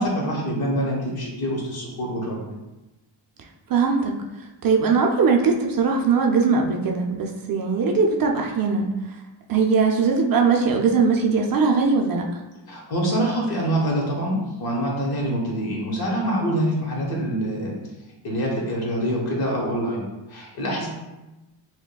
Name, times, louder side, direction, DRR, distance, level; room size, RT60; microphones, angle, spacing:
voice 1, 0.0-2.5 12.7-17.8 18.2-20.0 20.3-20.9, equal, 50° left, -2 dB, 1.2 m, -25 dB
voice 2, 3.7-4.2 4.6-8.9 9.5-12.2, right 5 dB, 50° right, 1 dB, 0.5 m, -20 dB
5.9 x 2.2 x 2.3 m, 1.0 s
cardioid pair, 110°, 47 cm